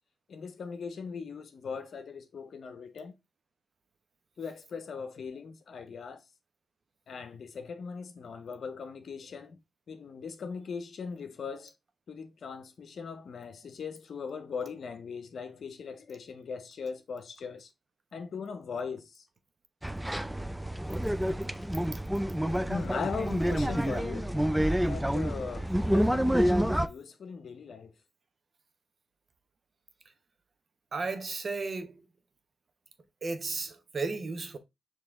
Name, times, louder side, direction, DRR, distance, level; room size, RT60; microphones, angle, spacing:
voice 1, 0.3-3.2 4.4-6.2 7.1-9.6 9.9-11.7 12.1-17.7 18.1-19.3 22.7-24.4 24.8-28.0, left 5 dB, 70° left, 0.7 m, -39 dB
sound 1, 19.8-26.9, equal, 5° right, 0.4 m, -28 dB
voice 2, 30.9-32.1 33.2-34.6, right 3 dB, 50° right, 0.9 m, -34 dB
4.8 x 3.0 x 3.5 m
supercardioid pair, 50°, 0 cm